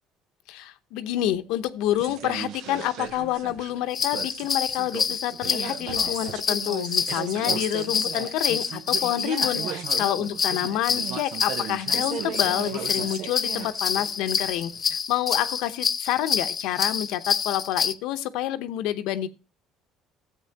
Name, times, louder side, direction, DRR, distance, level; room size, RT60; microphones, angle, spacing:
voice 1, 0.5-19.3, left 13 dB, 80° left, 11 dB, 0.8 m, -28 dB
sound 1, 1.9-15.0, right 10 dB, 70° right, 0.7 m, -37 dB
sound 2, 3.9-17.9, left 6 dB, 35° left, 0.7 m, -28 dB
14.0 x 8.1 x 2.8 m, 0.29 s
cardioid pair, 100°, 0 cm